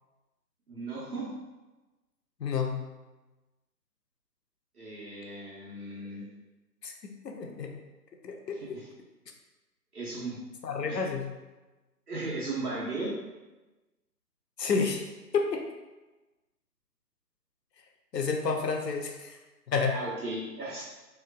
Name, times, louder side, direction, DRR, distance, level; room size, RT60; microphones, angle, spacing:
voice 1, 0.7-1.3 4.7-6.3 8.5-8.8 9.9-10.4 10.9-11.0 12.1-13.1 19.9-20.8, right 2 dB, 65° right, -6 dB, 1.1 m, -36 dB
voice 2, 2.4-2.8 6.8-6.9 7.2-7.8 8.2-8.8 10.6-11.3 14.6-15.7 18.1-19.4 19.7-20.0, left 5 dB, 80° left, 3 dB, 0.6 m, -30 dB
3.0 x 2.3 x 2.2 m, 1.1 s
figure-of-eight pair, 145°, 49 cm